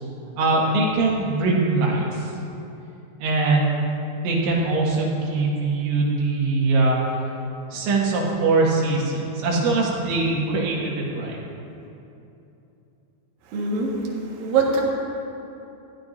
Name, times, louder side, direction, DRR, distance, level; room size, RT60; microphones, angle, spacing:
voice 1, 0.4-2.2 3.2-3.8 4.2-7.0 7.7-11.4, right 3 dB, 80° right, -3 dB, 4.1 m, -22 dB
voice 2, 13.5-14.8, right 4 dB, 60° right, -3 dB, 2.9 m, -23 dB
19.5 x 15.0 x 2.6 m, 2.8 s
omnidirectional pair, 5.3 m